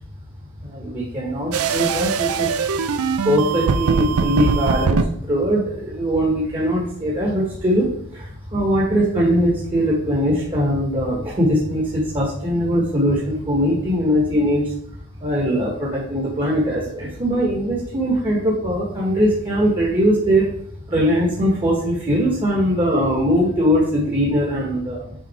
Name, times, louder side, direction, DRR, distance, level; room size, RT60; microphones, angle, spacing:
voice 1, 0.6-2.5 3.2-7.9 8.1-14.7 15.2-20.5 20.9-25.1, equal, 25° right, -4 dB, 1.5 m, -21 dB
sound 1, 1.5-5.1, right 5 dB, 70° right, 0.5 m, -21 dB
7.6 x 4.1 x 4.4 m, 0.66 s
head